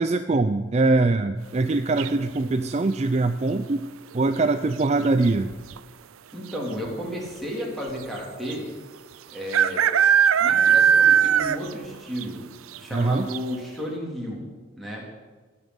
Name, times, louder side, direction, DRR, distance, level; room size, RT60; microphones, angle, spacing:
voice 1, 0.0-3.9 4.1-5.5 12.9-13.3, right 3 dB, 30° right, 10 dB, 0.4 m, -22 dB
sound 1, 2.0-2.5 4.3-4.7 4.9-5.0 5.2-5.8 6.5-6.6 6.9-7.0 8.5-8.6 9.5-11.8 12.2-12.3 12.8-12.9 13.3-13.4, right 8 dB, 85° right, 0.5 m, -19 dB
voice 2, 6.3-8.7 9.3-9.8 10.4-12.4 12.7-14.4 14.8-15.0, equal, ahead, -3 dB, 3.3 m, -33 dB
18.0 x 7.2 x 7.9 m, 1.4 s
head